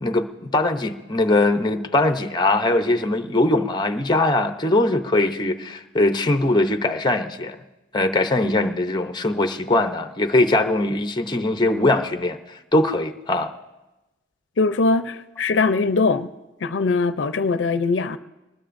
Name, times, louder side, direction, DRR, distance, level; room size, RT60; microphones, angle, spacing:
voice 1, 0.0-7.6 7.9-13.5, left 2 dB, 25° left, 0.7 m, -21 dB
voice 2, 14.6-16.3 16.6-18.2, left 3 dB, 75° left, 0.5 m, -21 dB
23.5 x 19.5 x 2.6 m
head